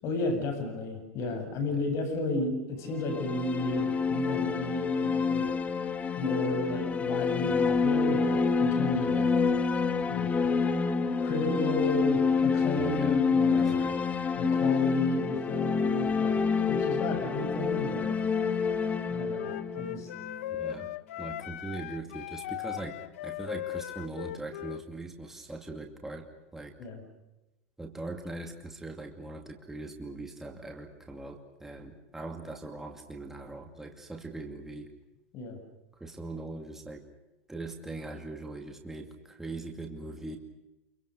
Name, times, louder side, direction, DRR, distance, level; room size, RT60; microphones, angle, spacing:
voice 1, 0.0-5.5 6.2-9.3 10.1-10.3 11.2-13.7 14.4-18.2 19.1-20.1 26.8-27.0 35.3-35.6, left 2 dB, 40° left, 6 dB, 8.0 m, -33 dB
sound 1, 2.9-20.8, left 5 dB, 20° left, 1.4 m, -27 dB
voice 2, 12.7-13.2 13.6-14.0 20.6-20.9 21.2-26.3 26.5-26.8 27.8-34.9 36.0-37.0 37.5-40.4, right 2 dB, 5° right, 2 dB, 2.4 m, -41 dB
Wind instrument woodwind instrument, 19.3-24.8, left 13 dB, 80° left, 0.8 m, -38 dB
28.0 x 23.5 x 6.7 m, 0.98 s
supercardioid pair, 130°, 7 cm